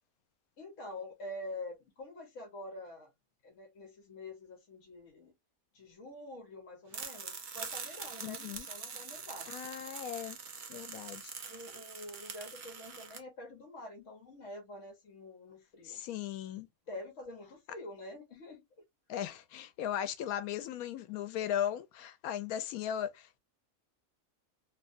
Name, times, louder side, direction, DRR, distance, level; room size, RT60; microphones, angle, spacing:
voice 1, 0.6-3.1 3.4-5.3 5.7-9.5 10.8-10.9 11.5-16.0 16.9-18.6, left 1 dB, 65° left, 1.1 m, -46 dB
sound 1, 6.9-13.2, right 6 dB, 55° right, 0.5 m, -44 dB
voice 2, 8.2-8.7 9.5-10.4 10.7-11.3 15.8-16.7 19.1-23.4, left 10 dB, 90° left, 1.0 m, -37 dB
2.9 x 2.2 x 2.5 m
omnidirectional pair, 1.5 m